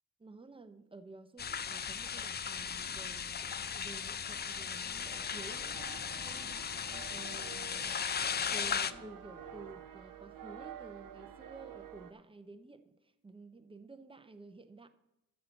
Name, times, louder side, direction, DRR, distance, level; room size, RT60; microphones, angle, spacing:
voice 1, 0.2-3.4 3.7-6.6 7.1-8.0 8.5-14.9, right 3 dB, 15° right, 9 dB, 0.7 m, -52 dB
sound 1, 1.4-8.9, left 7 dB, 30° left, 0.4 m, -37 dB
sound 2, 4.3-12.1, right 10 dB, 90° right, 1.0 m, -50 dB
sound 3, 4.8-9.8, left 3 dB, 60° left, 2.8 m, -58 dB
13.0 x 4.5 x 7.0 m, 0.89 s
wide cardioid pair, 150°, 32 cm